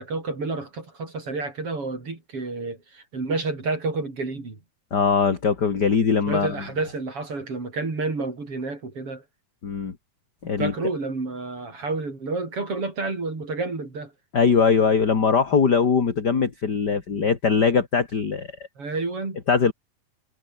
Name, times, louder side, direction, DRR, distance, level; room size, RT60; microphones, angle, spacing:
voice 1, 0.0-4.6 6.3-9.2 10.6-14.1 18.8-19.4, right 3 dB, 40° right, 6.0 m, -30 dB
voice 2, 4.9-6.5 9.6-9.9 10.4-10.7 14.3-18.5 19.5-19.7, left 5 dB, 35° left, 2.5 m, -21 dB
omnidirectional pair, 4.0 m